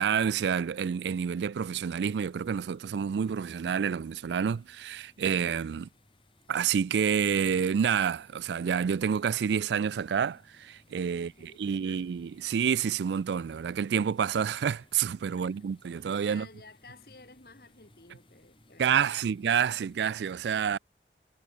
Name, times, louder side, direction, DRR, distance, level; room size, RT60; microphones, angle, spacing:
voice 1, 0.0-5.9 6.5-16.5 18.8-20.8, right 7 dB, 80° right, 0.3 m, -28 dB
sound 1, 2.1-20.1, left 1 dB, 30° left, 3.1 m, -63 dB
voice 2, 11.1-12.2 15.3-19.3 19.6-19.8, left 3 dB, 55° left, 2.9 m, -55 dB
head